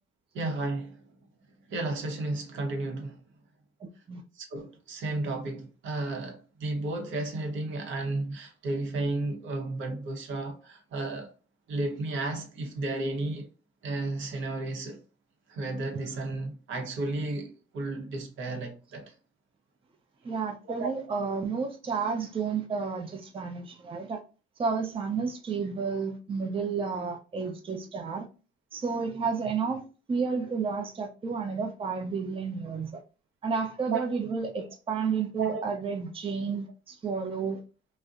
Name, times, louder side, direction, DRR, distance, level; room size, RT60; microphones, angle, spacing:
voice 1, 0.3-1.0 1.7-3.2 4.4-11.3 11.7-13.5 13.8-15.0 15.5-19.1 20.8-20.9 33.9-34.1 34.5-34.7 35.4-35.7, right 2 dB, 75° right, 0.8 m, -33 dB
voice 2, 20.2-24.2 24.6-28.3 28.7-33.0 33.4-37.6, right 5 dB, 25° right, 0.5 m, -31 dB
2.6 x 2.1 x 2.4 m
cardioid pair, 90°, 20 cm